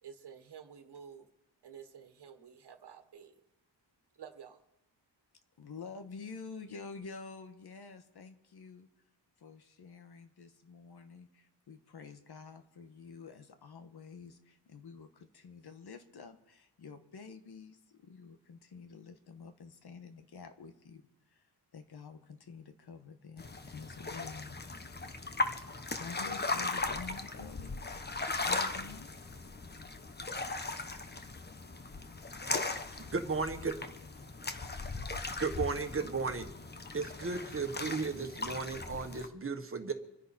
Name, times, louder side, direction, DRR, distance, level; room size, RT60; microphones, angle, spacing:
voice 1, 0.0-1.3 1.6-3.4 4.2-4.6, right 7 dB, 70° right, 7 dB, 1.6 m, -51 dB
voice 2, 5.6-8.9 9.4-24.6 25.9-27.9 28.1-29.1, left 5 dB, 65° left, 8 dB, 1.6 m, -49 dB
sound 1, 23.4-39.3, left 3 dB, 25° left, 1.1 m, -38 dB
voice 3, 33.1-33.7 35.3-36.5 36.9-39.9, right 4 dB, 30° right, 6 dB, 1.6 m, -35 dB
27.0 x 10.5 x 4.4 m, 0.92 s
wide cardioid pair, 95°, 41 cm